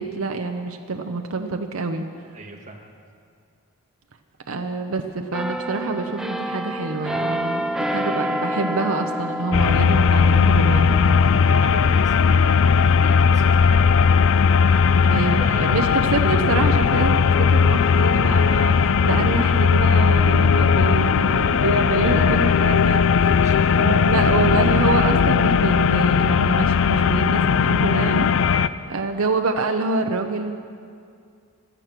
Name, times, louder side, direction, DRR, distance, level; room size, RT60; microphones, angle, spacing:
voice 1, 0.0-2.1 4.5-11.4 15.0-30.5, right 3 dB, 65° right, 5 dB, 0.8 m, -26 dB
voice 2, 2.3-2.9 11.5-13.8 14.7-15.0 15.4-15.9 21.9-22.5 23.4-23.7, right 2 dB, 35° right, 1 dB, 1.7 m, -37 dB
sound 1, 5.3-16.9 17.3-17.5, equal, 5° right, 0.7 m, -31 dB
sound 2, 9.5-28.7, left 6 dB, 65° left, 0.4 m, -17 dB
16.0 x 12.5 x 6.0 m, 2.3 s
head